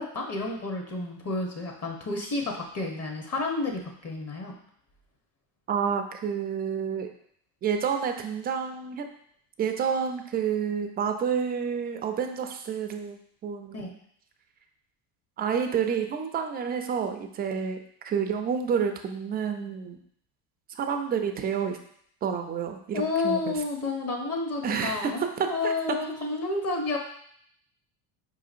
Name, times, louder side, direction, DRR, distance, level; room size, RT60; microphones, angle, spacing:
voice 1, 0.0-4.5 13.7-13.9 22.9-27.0, left 3 dB, 30° left, 2 dB, 0.8 m, -30 dB
voice 2, 5.7-7.1 7.6-9.1 9.6-13.2 13.4-14.0 15.4-20.0 20.8-21.8 22.2-23.5 24.6-25.7, right 7 dB, 25° right, 5 dB, 0.3 m, -29 dB
4.8 x 2.8 x 2.5 m, 0.65 s
supercardioid pair, 90°, 48 cm